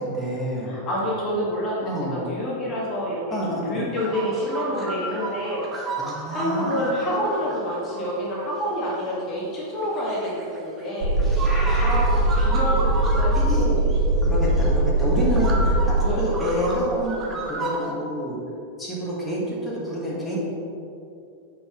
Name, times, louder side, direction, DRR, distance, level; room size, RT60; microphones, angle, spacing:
voice 1, 0.0-0.8 1.8-2.2 3.3-3.8 5.7-6.8 11.2-12.1 12.5-12.6 13.3-13.9 14.2-18.4 18.8-20.4, equal, 15° left, -6 dB, 1.5 m, -28 dB
voice 2, 0.6-5.7 6.3-11.1 11.7-12.0 12.3-13.8 16.0-16.4, equal, 30° left, -4 dB, 1.5 m, -28 dB
sound 1, 3.9-9.2 9.8-10.9 11.3-13.4 13.9-14.0 14.6-14.7 15.2-17.9, right 2 dB, 25° right, 1.1 m, -33 dB
sound 2, 11.0-16.1, right 1 dB, 50° right, 1.3 m, -20 dB
7.0 x 5.4 x 3.7 m, 2.6 s
figure-of-eight pair, 90°, 0 cm